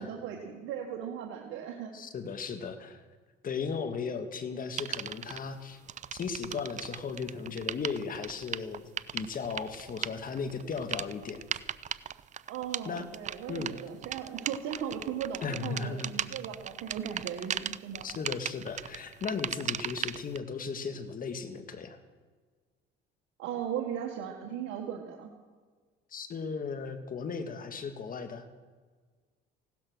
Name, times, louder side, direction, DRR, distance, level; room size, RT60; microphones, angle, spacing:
voice 1, 0.0-1.9 12.5-18.1 23.4-25.3, right 8 dB, 80° right, 1 dB, 1.7 m, -37 dB
voice 2, 1.9-3.0 3.4-5.8 6.1-11.5 12.8-13.1 13.5-13.8 15.4-16.1 18.0-22.0 26.1-28.5, left 5 dB, 45° left, 9 dB, 1.7 m, -36 dB
sound 1, 4.8-5.4 5.9-20.4, right 9 dB, 40° right, 0.5 m, -37 dB
16.5 x 12.5 x 6.3 m, 1.5 s
cardioid pair, 95°, 20 cm